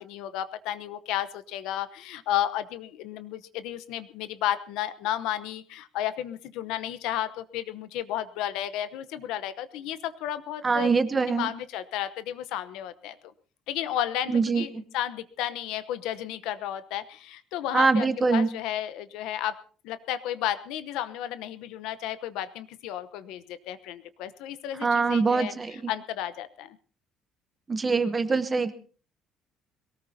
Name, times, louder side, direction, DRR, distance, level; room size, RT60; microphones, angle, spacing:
voice 1, 0.0-10.9 11.3-13.2 13.7-19.6 19.8-26.8, left 12 dB, 85° left, 14 dB, 0.9 m, -33 dB
voice 2, 10.6-11.5 14.3-14.6 17.7-18.5 24.8-25.9 27.7-28.7, right 4 dB, 15° right, 12 dB, 0.9 m, -24 dB
22.0 x 18.0 x 2.8 m, 0.39 s
cardioid pair, 175°, 0 cm